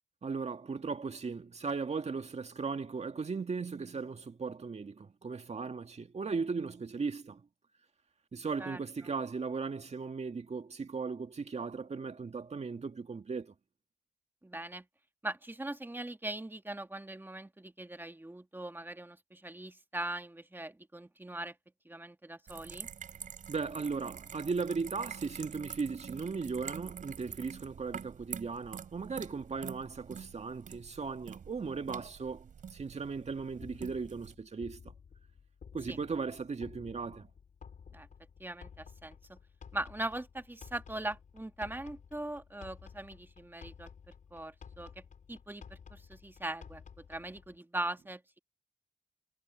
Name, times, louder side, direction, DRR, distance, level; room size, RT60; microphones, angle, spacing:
voice 1, 0.2-7.4 8.3-13.5 23.5-34.9 35.7-37.3, right 4 dB, 55° right, 2.0 m, -37 dB
voice 2, 14.4-14.8 15.2-21.5 21.8-22.9 35.9-36.0 37.9-38.1 38.4-39.4 39.7-43.9 44.3-45.0 45.3-46.8 47.1-48.2, right 1 dB, 15° right, 1.6 m, -40 dB
sound 1, 22.5-34.3, right 7 dB, 85° right, 4.3 m, -47 dB
sound 2, 33.2-47.6, left 6 dB, 80° left, 4.6 m, -54 dB
cardioid pair, 50°, 13 cm